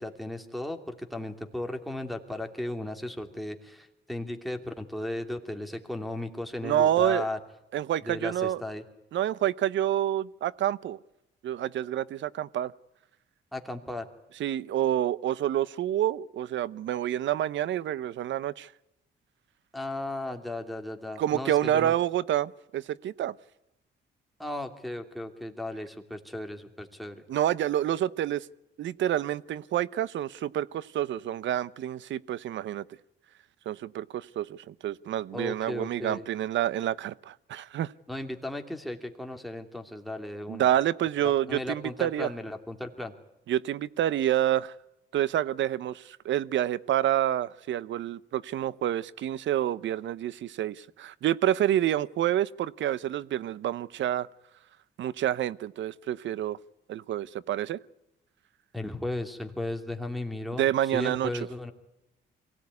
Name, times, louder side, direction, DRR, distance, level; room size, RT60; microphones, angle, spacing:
voice 1, 0.0-7.4 8.0-8.8 13.5-14.1 19.7-21.9 24.4-27.2 35.3-36.3 38.1-40.7 41.2-43.1 58.7-61.7, left 1 dB, ahead, 2.9 m, -35 dB
voice 2, 6.6-7.3 7.7-8.6 9.1-11.0 11.4-12.7 14.4-18.7 21.2-23.3 27.3-28.5 28.8-32.8 33.7-37.9 40.5-42.3 43.5-44.7 45.1-54.3 55.0-56.6 56.9-57.8 60.6-61.3, right 11 dB, 70° right, 0.8 m, -28 dB
23.0 x 17.0 x 9.6 m
cardioid pair, 90°, 20 cm